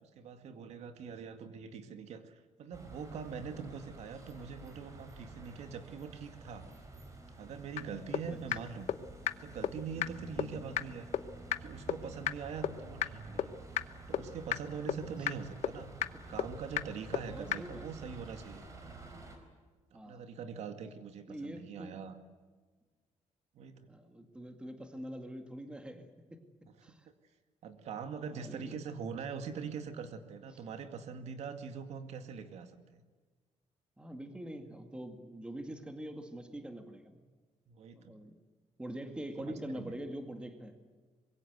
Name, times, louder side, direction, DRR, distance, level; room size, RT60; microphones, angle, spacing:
voice 1, 0.0-6.7 7.4-9.0 9.4-11.1 11.6-13.6 14.1-15.9 16.3-18.7 19.9-22.2 23.5-23.9 27.1-27.2 27.6-33.0 37.7-38.1 39.7-40.0, right 6 dB, 60° right, 8 dB, 2.2 m, -43 dB
sound 1, 2.7-19.4, right 2 dB, 25° right, 4.6 m, -50 dB
sound 2, 7.8-7.9 8.1-8.2 8.5-8.6 8.9-9.0 9.3-9.4 9.6-9.7 10.0-10.1 10.4-10.5 10.8-10.9 11.1-11.2 11.5-11.6 11.9-12.0 12.3-12.4 12.6-12.7 13.0-13.1 13.4-13.5 13.8-13.9 14.1-14.2 14.5-14.6 14.9-15.0 15.3-15.4 15.6-15.7 16.0-16.1 16.4-16.5 16.8-16.9 17.1-17.2 17.5-17.6, left 12 dB, 65° left, 1.0 m, -30 dB
voice 2, 17.3-17.9 19.9-20.2 21.3-22.0 23.9-26.4 26.8-27.1 28.3-28.7 34.0-37.2 37.9-38.3 38.8-40.7, right 1 dB, 10° right, 6 dB, 2.0 m, -44 dB
25.0 x 22.0 x 8.1 m, 1.4 s
cardioid pair, 180°, 12 cm